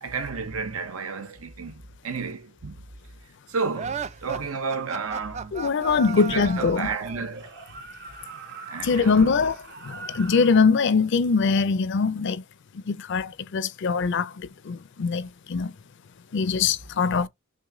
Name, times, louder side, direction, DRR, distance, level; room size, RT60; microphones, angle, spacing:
voice 1, 0.0-2.8 3.5-5.6 6.0-7.5 8.7-9.4, right 5 dB, 80° right, 0.8 m, -32 dB
sound 1, 3.7-7.3, right 6 dB, 30° right, 0.3 m, -35 dB
voice 2, 5.5-6.9 8.8-9.6 9.8-12.4 12.9-15.7 16.3-17.3, left 5 dB, 55° left, 0.4 m, -22 dB
sound 2, 7.2-10.7, right 4 dB, 55° right, 1.0 m, -42 dB
6.1 x 2.2 x 3.7 m
head